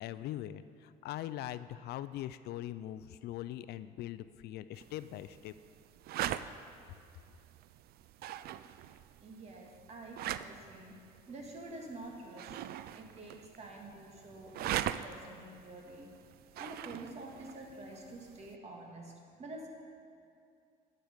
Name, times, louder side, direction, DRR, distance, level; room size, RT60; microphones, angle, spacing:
voice 1, 0.0-5.5, left 13 dB, 75° left, 14 dB, 0.4 m, -41 dB
sound 1, 4.7-18.5, right 12 dB, 65° right, 0.4 m, -43 dB
voice 2, 9.2-10.9 11.3-12.6 12.9-16.1 16.6-19.1 19.4-19.7, right 2 dB, 40° right, 1 dB, 1.8 m, -48 dB
12.0 x 7.8 x 5.1 m, 2.4 s
cardioid pair, 110°, 17 cm